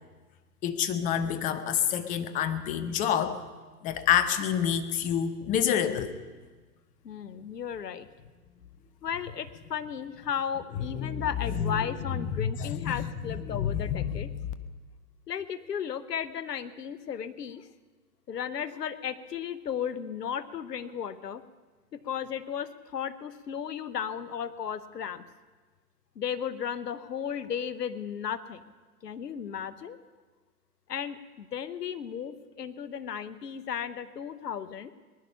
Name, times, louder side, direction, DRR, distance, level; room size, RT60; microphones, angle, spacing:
voice 1, 0.6-3.4 3.8-6.2 10.9-11.2 11.5-13.1 13.5-14.4, left 9 dB, 15° left, 11 dB, 0.6 m, -28 dB
voice 2, 7.0-8.1 9.0-14.3 15.3-17.7 18.3-21.4 21.9-25.2 26.2-28.6 29.0-30.0 30.9-34.9, left 8 dB, 80° left, 14 dB, 1.0 m, -35 dB
19.5 x 11.5 x 5.6 m, 1.3 s
hypercardioid pair, 120°, 47 cm